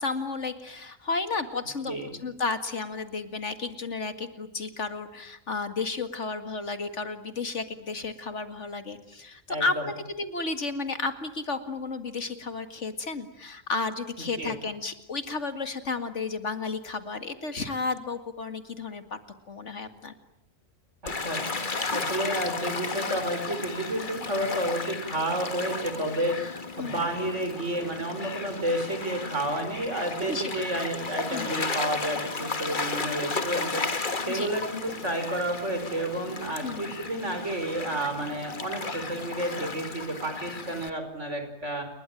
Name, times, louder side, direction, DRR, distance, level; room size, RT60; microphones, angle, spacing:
voice 1, 0.0-19.2 19.5-20.1 26.8-27.1 30.3-30.6 31.3-31.5 34.3-34.5 36.6-36.9, left 4 dB, 60° left, 9 dB, 2.3 m, -32 dB
voice 2, 9.5-9.8 14.4-14.5 21.2-21.6 21.9-26.4 26.8-33.8 34.2-41.8, right 1 dB, 60° right, 7 dB, 5.4 m, -31 dB
Gull seagull / Waves surf, 21.1-40.9, left 4 dB, 40° left, 1.7 m, -34 dB
30.0 x 22.0 x 9.1 m, 0.79 s
omnidirectional pair, 1.4 m